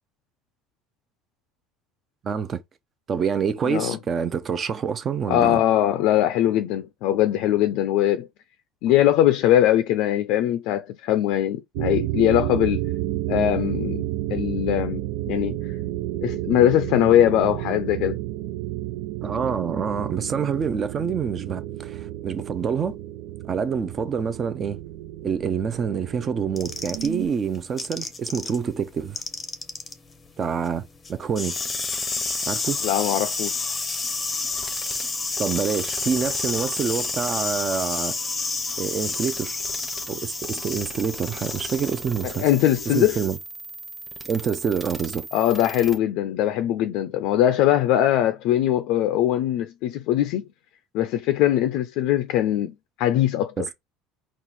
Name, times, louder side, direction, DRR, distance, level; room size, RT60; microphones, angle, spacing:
voice 1, 2.2-2.6 3.1-5.6 19.2-22.9 23.5-24.8 25.2-29.2 30.4-30.8 31.1-31.6 32.5-32.8 35.4-38.2 38.8-39.6 40.1-42.4 42.9-43.4 44.2-45.3 53.6-53.7, right 6 dB, 30° right, 0.5 m, -27 dB
voice 2, 3.7-4.0 5.3-8.3 8.8-12.8 13.3-15.6 16.2-18.2 32.8-33.8 42.2-43.2 45.3-50.4 50.9-53.5, left 12 dB, 65° left, 0.4 m, -21 dB
sound 1, 11.7-27.3, right 15 dB, 80° right, 0.4 m, -31 dB
sound 2, 26.6-28.6 28.9-43.4, left 4 dB, 20° left, 0.7 m, -30 dB
sound 3, 31.5-46.0, right 2 dB, 5° right, 1.0 m, -38 dB
4.3 x 2.4 x 4.2 m
cardioid pair, 140°, 0 cm